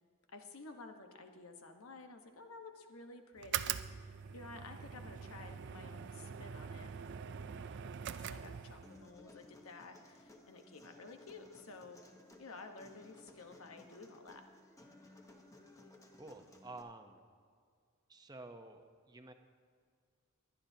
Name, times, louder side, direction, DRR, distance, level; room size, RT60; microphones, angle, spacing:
voice 1, 0.3-6.9 8.2-12.0 12.4-14.4, left 3 dB, 80° left, 5 dB, 1.1 m, -52 dB
sound 1, 3.4-9.0, right 8 dB, 55° right, 0.4 m, -43 dB
Human voice, 8.8-16.8, left 1 dB, 15° left, 0.9 m, -59 dB
voice 2, 16.1-17.2 18.1-19.3, right 2 dB, 20° right, 5 dB, 0.7 m, -51 dB
22.0 x 10.5 x 2.8 m, 2.1 s
head